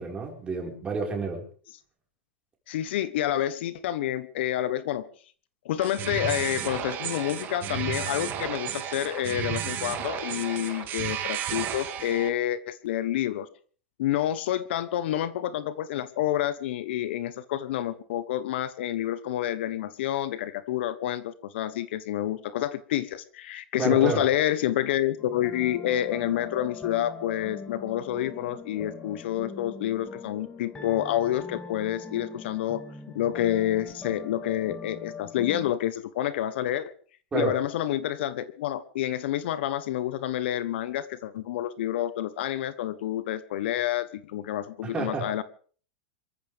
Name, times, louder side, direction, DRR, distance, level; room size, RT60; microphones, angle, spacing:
voice 1, 0.0-1.4 23.8-24.2 37.3-37.6 44.8-45.3, right 4 dB, 15° right, 1 dB, 5.0 m, -29 dB
voice 2, 2.7-5.1 5.6-13.5 14.0-32.8 33.1-36.9 37.3-45.4, left 12 dB, 70° left, 15 dB, 1.2 m, -28 dB
sound 1, 5.8-12.3, right 10 dB, 35° right, 2.5 m, -33 dB
sound 2, 25.2-35.7, left 5 dB, 15° left, 1.9 m, -42 dB
26.5 x 14.0 x 3.6 m, 0.43 s
supercardioid pair, 140°, 6 cm